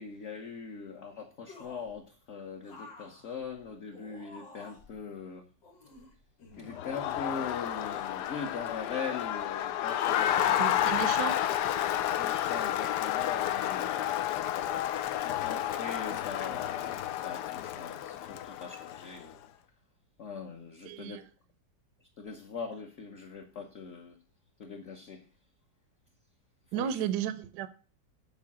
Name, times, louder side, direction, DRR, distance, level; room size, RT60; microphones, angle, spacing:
voice 1, 0.0-5.5 6.6-10.9 12.1-14.1 15.4-17.0 17.2-19.4 20.2-21.2 22.2-24.2 24.6-25.3 26.7-27.1, left 5 dB, 45° left, 1.2 m, -41 dB
sound 1, 1.5-2.0 2.6-5.0 5.6-6.7 7.3-8.2 8.4-8.6, left 3 dB, 90° left, 2.7 m, -51 dB
Crowd, 6.7-19.2, left 12 dB, 70° left, 1.1 m, -31 dB
voice 2, 10.6-11.4 20.8-21.2 26.7-27.7, right 10 dB, 70° right, 1.1 m, -33 dB
7.5 x 4.7 x 7.2 m
omnidirectional pair, 1.9 m